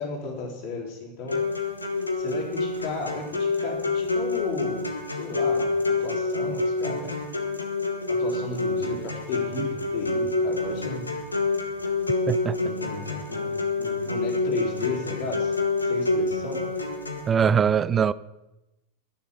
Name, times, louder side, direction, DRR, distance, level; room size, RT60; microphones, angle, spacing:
voice 1, 0.0-1.4 2.1-7.1 8.1-11.2 12.5-13.5 13.8-15.6 15.8-16.6, left 4 dB, 45° left, 3.8 m, -34 dB
sound 1, 1.3-17.3, left 3 dB, 80° left, 1.6 m, -27 dB
voice 2, 12.3-12.6 17.3-18.1, right 7 dB, 20° right, 0.4 m, -21 dB
12.5 x 7.1 x 7.3 m
figure-of-eight pair, 90°, 0 cm